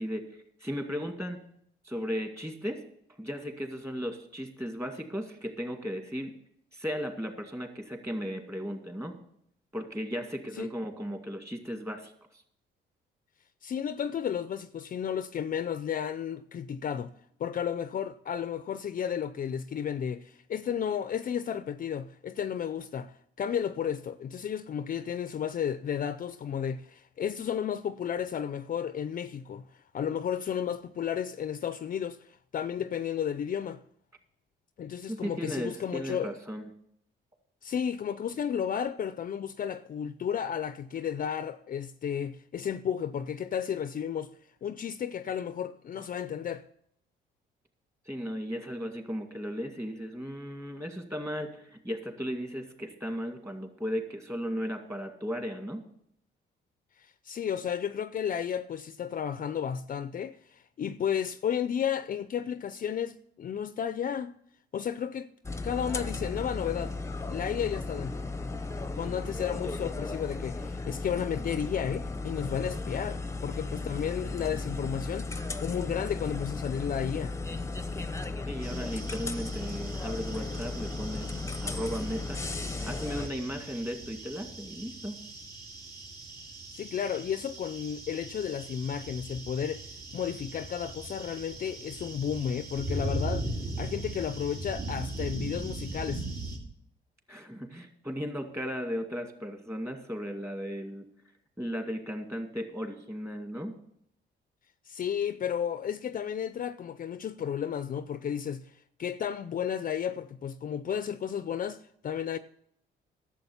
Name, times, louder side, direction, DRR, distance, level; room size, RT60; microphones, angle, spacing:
voice 1, 0.0-1.4 1.8-2.8 3.2-6.4 6.7-9.2 9.7-12.1 35.1-36.7 48.1-55.8 78.5-81.3 81.6-82.4 82.8-85.2 97.3-101.1 101.6-103.7, equal, 15° right, 2.2 m, -36 dB
voice 2, 13.6-17.1 17.4-29.6 29.9-33.8 34.8-36.3 37.6-44.3 44.6-46.6 57.2-64.3 64.7-65.3 65.6-66.9 67.3-68.3 68.9-77.3 86.7-89.9 90.1-93.5 93.8-96.3 104.9-108.6 109.0-112.4, left 8 dB, 45° left, 0.5 m, -33 dB
sound 1, 65.4-83.3, left 3 dB, 15° left, 0.7 m, -35 dB
sound 2, 78.6-96.6, right 2 dB, 50° right, 2.8 m, -39 dB
11.5 x 7.4 x 7.1 m
cardioid pair, 90°, 20 cm